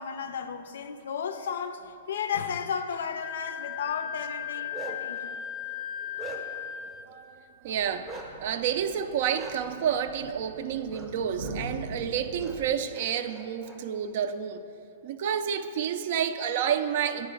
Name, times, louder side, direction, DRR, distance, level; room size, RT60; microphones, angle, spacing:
voice 1, 0.0-5.4, left 7 dB, 75° left, 0.4 m, -34 dB
Wind instrument woodwind instrument, 3.2-7.1, left 10 dB, 15° left, 0.4 m, -36 dB
Bark, 4.4-5.2 5.7-6.7 8.1-8.3 9.3-9.5 10.9-11.1 11.4-11.5 12.4-12.5 12.9-13.8, right 4 dB, 15° right, 0.7 m, -42 dB
voice 2, 7.6-8.1 8.4-14.6 15.0-17.3, right 8 dB, 50° right, 0.4 m, -29 dB
sound 1, 7.6-12.7, right 2 dB, 85° right, 0.8 m, -43 dB
8.9 x 4.7 x 5.0 m
hypercardioid pair, 160°, 0 cm